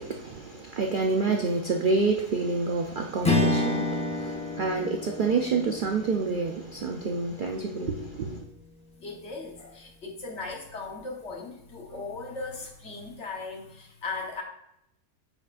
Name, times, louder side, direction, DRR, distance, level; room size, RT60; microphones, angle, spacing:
voice 1, 0.0-8.4, right 4 dB, 80° right, 0.4 m, -28 dB
Strum, 3.2-7.8, left 2 dB, 10° left, 0.4 m, -29 dB
voice 2, 9.0-14.4, left 3 dB, 50° left, 1.4 m, -38 dB
9.1 x 5.0 x 2.5 m
omnidirectional pair, 1.6 m